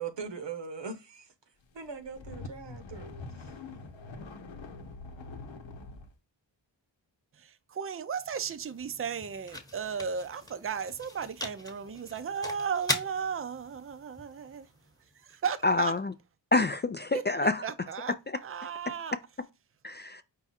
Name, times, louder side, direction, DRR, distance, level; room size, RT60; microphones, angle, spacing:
voice 1, 0.0-1.3 1.7-3.1, right 5 dB, 65° right, 1.1 m, -40 dB
sound 1, 1.9-6.1, left 3 dB, 75° left, 0.9 m, -44 dB
voice 2, 7.3-14.7 15.2-15.9 17.1-17.2 17.6-19.2, right 6 dB, 30° right, 0.5 m, -35 dB
sound 2, 7.9-16.0, left 1 dB, 10° left, 1.1 m, -41 dB
voice 3, 15.6-16.1 16.5-17.6 19.8-20.2, left 2 dB, 25° left, 0.3 m, -27 dB
4.8 x 2.3 x 4.2 m
cardioid pair, 55°, 46 cm